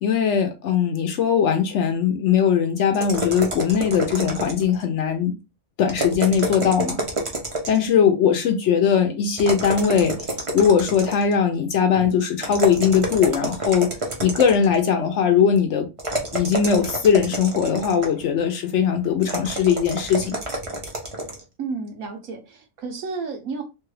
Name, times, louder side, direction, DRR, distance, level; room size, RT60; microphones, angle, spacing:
voice 1, 0.0-5.3 5.8-7.0 7.7-10.1 10.5-13.9 14.2-15.9 16.3-20.4, left 7 dB, 65° left, 0.8 m, -20 dB
sound 1, 2.9-4.8 5.9-7.9 9.4-11.4 12.4-14.8 16.0-18.2 19.2-21.4, right 1 dB, 40° right, 0.5 m, -28 dB
voice 2, 21.6-23.6, right 4 dB, 75° right, 1.3 m, -31 dB
3.1 x 2.3 x 3.1 m
omnidirectional pair, 1.5 m